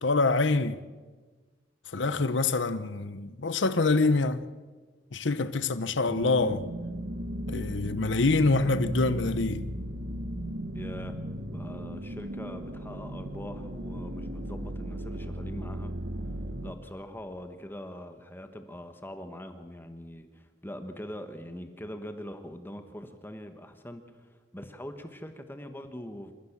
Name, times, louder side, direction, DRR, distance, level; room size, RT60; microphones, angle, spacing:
voice 1, 0.0-0.8 1.9-4.4 5.1-6.6 7.5-9.7, left 3 dB, 80° left, 0.9 m, -26 dB
sound 1, 6.1-16.7, right 1 dB, 75° right, 1.7 m, -35 dB
voice 2, 10.7-11.2 11.5-15.9 16.6-26.3, left 1 dB, 10° left, 1.3 m, -42 dB
27.5 x 15.0 x 7.3 m
head